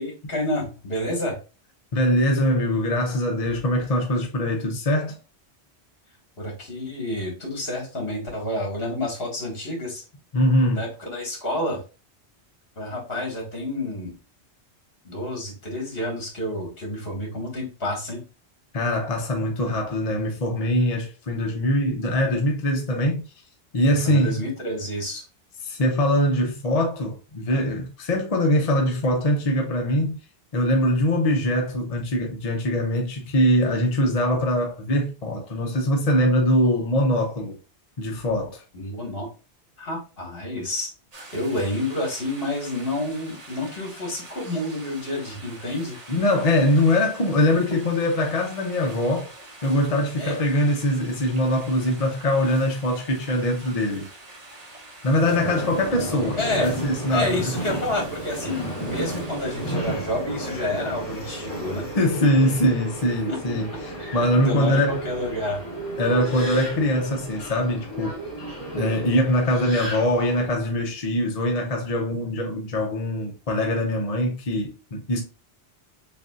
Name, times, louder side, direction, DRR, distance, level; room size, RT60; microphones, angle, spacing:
voice 1, 0.0-1.4 6.4-10.0 10.7-11.8 12.8-14.2 15.0-18.2 23.9-25.2 38.7-39.3 39.8-40.9 41.3-46.0 50.2-50.4 56.4-56.7 57.1-61.9 63.2-63.5 64.4-65.6, left 1 dB, 60° left, 2.0 m, -29 dB
voice 2, 1.9-5.2 10.3-10.8 18.7-23.3 23.7-24.4 25.6-30.2 30.5-37.6 38.0-38.6 46.1-49.3 49.6-54.1 55.0-57.5 61.9-65.0 66.0-68.2 68.7-75.2, left 1 dB, 40° left, 0.7 m, -22 dB
sound 1, 41.1-59.7, right 2 dB, 35° right, 1.1 m, -45 dB
Subway metro underground, 55.2-70.5, right 1 dB, 20° left, 1.7 m, -33 dB
6.7 x 2.6 x 2.4 m
omnidirectional pair, 1.2 m